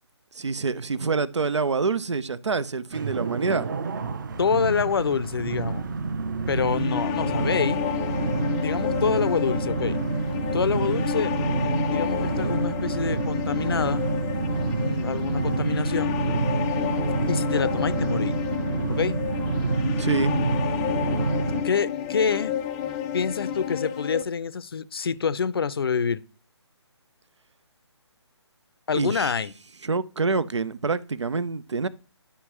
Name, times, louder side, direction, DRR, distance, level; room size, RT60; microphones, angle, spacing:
voice 1, 0.3-3.7 20.0-20.3 28.9-29.3 29.8-31.9, right 4 dB, 75° right, 0.6 m, -26 dB
sound 1, 2.9-21.6, right 4 dB, 45° right, 0.9 m, -28 dB
voice 2, 4.4-5.9 6.5-7.8 8.6-10.0 10.5-11.3 11.9-14.0 14.8-16.2 17.3-18.4 18.9-19.2 21.6-22.5 23.1-26.2 28.9-29.5, left 6 dB, 55° left, 0.6 m, -26 dB
sound 2, 6.6-24.2, left 10 dB, 10° left, 0.4 m, -30 dB
11.0 x 5.7 x 3.0 m
figure-of-eight pair, 145°, 15 cm